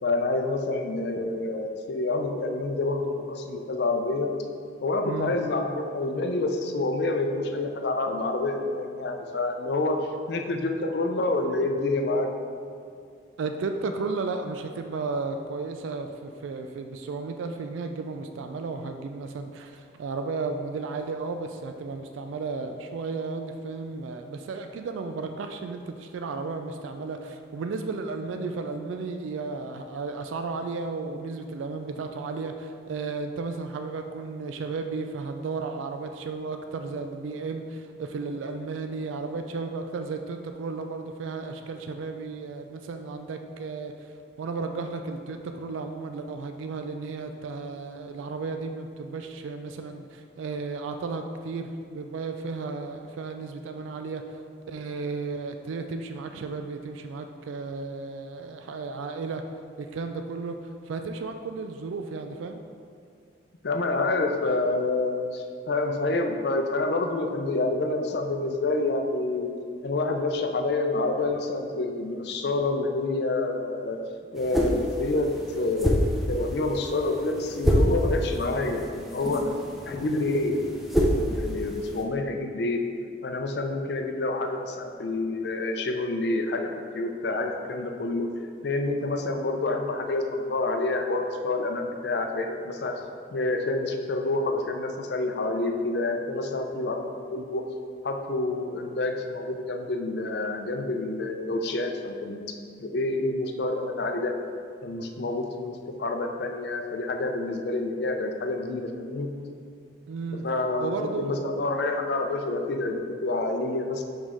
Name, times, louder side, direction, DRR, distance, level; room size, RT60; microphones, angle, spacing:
voice 1, 0.0-4.3 4.8-12.3 63.6-69.5 69.8-74.0 74.3-79.5 79.8-80.5 81.1-82.8 83.2-88.3 88.6-92.9 93.3-97.6 98.0-102.5 102.8-104.3 104.8-109.3 110.4-114.0, left 2 dB, 60° left, 4 dB, 0.5 m, -28 dB
voice 2, 5.0-5.4 13.4-54.4 54.7-59.4 59.8-62.6 110.1-110.4 110.8-111.5, right 4 dB, 90° right, 6 dB, 0.3 m, -34 dB
sound 1, 74.4-82.0, equal, ahead, 0.5 m, -28 dB
5.4 x 5.1 x 3.6 m, 2.3 s
head